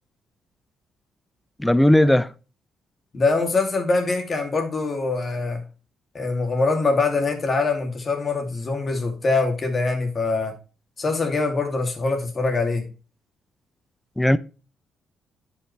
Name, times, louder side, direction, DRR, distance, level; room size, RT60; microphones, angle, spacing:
voice 1, 1.6-2.3 14.2-14.4, left 1 dB, 5° left, 0.6 m, -16 dB
voice 2, 3.1-5.6 6.1-10.5 11.0-12.9, left 3 dB, 40° left, 2.5 m, -23 dB
10.5 x 5.7 x 3.2 m
cardioid pair, 90°, 0 cm